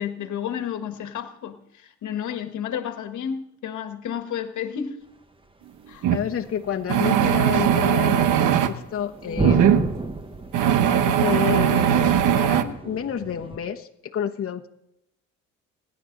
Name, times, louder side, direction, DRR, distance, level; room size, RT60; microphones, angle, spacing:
voice 1, 0.0-5.0 5.9-6.1 9.3-9.4, left 8 dB, 75° left, 8 dB, 1.5 m, -31 dB
sound 1, 5.9-13.6, right 3 dB, 15° right, 1.2 m, -33 dB
sound 2, 6.0-6.2 6.9-8.7 9.4-9.8 10.5-12.6, right 9 dB, 85° right, 1.1 m, -19 dB
voice 2, 6.1-8.3 8.7-9.9 11.0-14.7, left 8 dB, 45° left, 3 dB, 1.1 m, -29 dB
30.0 x 11.0 x 3.9 m, 0.84 s
cardioid pair, 90°, 30 cm